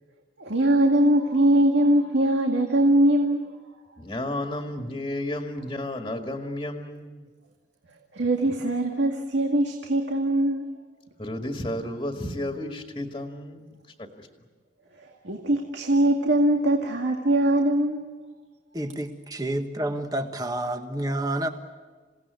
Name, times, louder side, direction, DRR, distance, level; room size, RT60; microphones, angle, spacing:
voice 1, 0.4-3.5 8.1-10.7 15.0-18.1, right 1 dB, 75° right, 2 dB, 2.0 m, -22 dB
voice 2, 4.0-7.3 11.2-14.3, left 1 dB, 25° left, 3 dB, 1.9 m, -32 dB
voice 3, 18.7-21.5, right 1 dB, 20° right, 6 dB, 1.4 m, -29 dB
28.0 x 17.5 x 9.5 m, 1.4 s
head